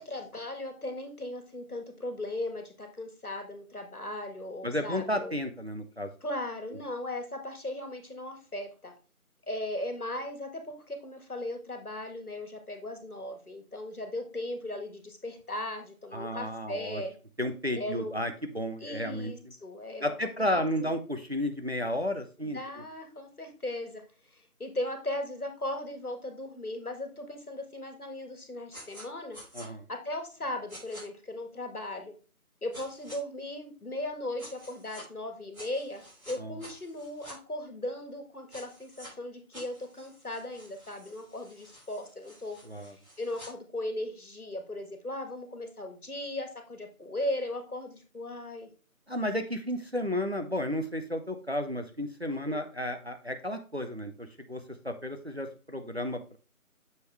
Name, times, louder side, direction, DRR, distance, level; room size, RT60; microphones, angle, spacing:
voice 1, 0.0-5.4 6.2-8.9 9.5-17.1 17.7-18.2 18.8-20.9 22.4-24.0 24.3-29.4 29.9-32.1 32.6-48.7 52.3-52.6, left 1 dB, 75° left, 6 dB, 1.7 m, -37 dB
voice 2, 4.6-6.1 16.1-17.0 17.4-19.3 20.0-22.6 29.5-29.9 36.4-36.6 42.6-42.9 49.1-56.4, left 1 dB, 45° right, 6 dB, 0.7 m, -32 dB
sound 1, 28.7-29.1 29.3-29.7 30.7-31.0 32.7-33.2 34.4-35.1 35.5-37.4 38.5-39.1 39.5-43.5, equal, 70° right, 3.2 m, -49 dB
6.8 x 5.0 x 3.3 m, 0.35 s
figure-of-eight pair, 180°, 44 cm